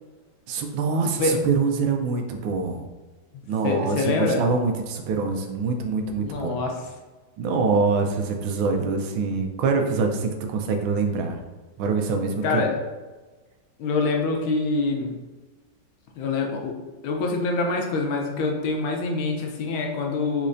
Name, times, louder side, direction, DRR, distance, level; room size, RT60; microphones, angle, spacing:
voice 1, 0.5-2.8 3.5-6.6 7.4-11.4 11.8-12.7, right 4 dB, 85° right, 4 dB, 1.4 m, -25 dB
voice 2, 3.6-4.4 6.2-6.8 12.4-12.8 13.8-15.1 16.2-20.5, left 3 dB, 85° left, 1 dB, 1.5 m, -25 dB
4.3 x 3.0 x 2.5 m, 1.2 s
omnidirectional pair, 2.2 m